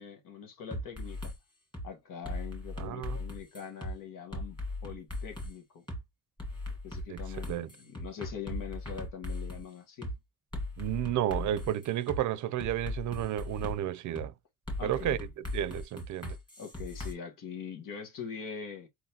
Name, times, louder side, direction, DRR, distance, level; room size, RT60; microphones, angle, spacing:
voice 1, 0.0-1.3 1.8-5.8 6.8-10.1 14.8-15.2 16.6-18.9, left 7 dB, 90° left, 1.4 m, -43 dB
sound 1, 0.7-1.3 1.7-1.9 2.2-3.9 4.3-5.5 5.9-6.0 6.4-9.6 10.0-10.1 10.5-12.2 12.6-13.8 14.2-14.3 14.7-17.1, left 2 dB, 15° left, 1.6 m, -38 dB
voice 2, 2.8-3.2 7.1-7.2 7.5-7.7 10.8-14.3 14.8-16.4, right 12 dB, 65° right, 0.5 m, -32 dB
4.7 x 3.9 x 2.8 m
cardioid pair, 160°, 32 cm